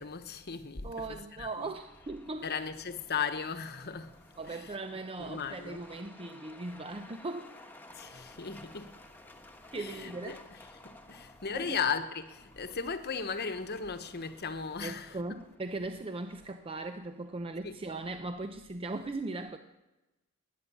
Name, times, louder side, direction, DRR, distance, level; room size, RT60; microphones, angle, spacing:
voice 1, 0.0-1.7 2.4-4.2 4.5-4.7 5.2-5.8 7.9-8.9 9.7-10.4 10.8-15.4 17.6-17.7, left 6 dB, 50° left, 1.1 m, -37 dB
voice 2, 0.8-2.5 4.4-7.5 9.7-10.4 11.5-11.8 14.8-19.6, right 2 dB, 25° right, 0.6 m, -39 dB
Truck, 1.6-17.4, left 2 dB, 10° left, 1.3 m, -56 dB
20.5 x 9.3 x 7.1 m
head